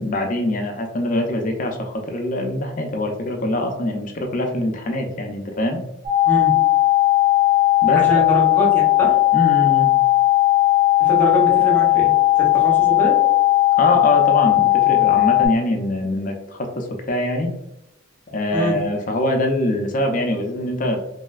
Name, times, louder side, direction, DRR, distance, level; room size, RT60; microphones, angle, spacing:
voice 1, 0.0-5.8 7.8-8.2 9.3-9.9 13.8-17.5 18.3-21.0, left 1 dB, 40° left, 3 dB, 0.4 m, -23 dB
sound 1, 6.0-15.5, left 17 dB, 40° right, 0.9 m, -16 dB
voice 2, 7.9-9.2 11.0-13.2 18.5-18.8, right 1 dB, 10° left, -4 dB, 0.7 m, -24 dB
3.1 x 2.6 x 2.3 m, 0.89 s
head